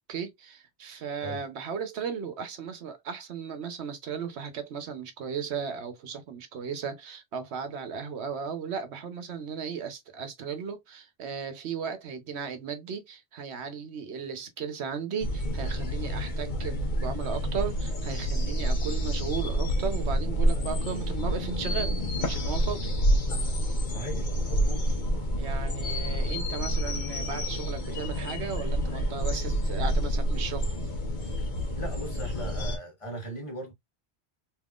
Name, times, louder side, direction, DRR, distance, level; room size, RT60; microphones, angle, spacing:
voice 1, 0.1-22.9 25.4-30.7, right 6 dB, 85° right, 1.1 m, -36 dB
sound 1, 15.2-32.8, equal, 50° left, 1.0 m, -28 dB
voice 2, 23.8-24.9 31.3-31.4 31.7-33.7, right 1 dB, 30° left, 1.3 m, -39 dB
3.5 x 3.0 x 2.4 m
omnidirectional pair, 1.1 m